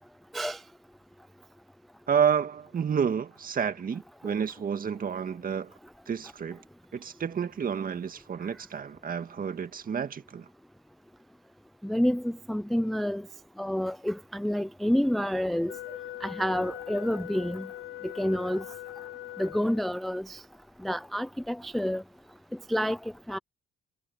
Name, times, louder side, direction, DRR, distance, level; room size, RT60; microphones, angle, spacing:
voice 1, 2.1-5.7 6.1-6.6 6.9-10.5, right 7 dB, 45° right, 1.9 m, -30 dB
voice 2, 11.8-13.3 13.6-17.7 18.0-18.6 19.4-20.4 20.8-22.0 22.7-23.4, equal, ahead, 0.3 m, -29 dB
Wind instrument woodwind instrument, 15.7-20.1, left 13 dB, 80° left, 6.0 m, -41 dB
cardioid pair, 90°, 20 cm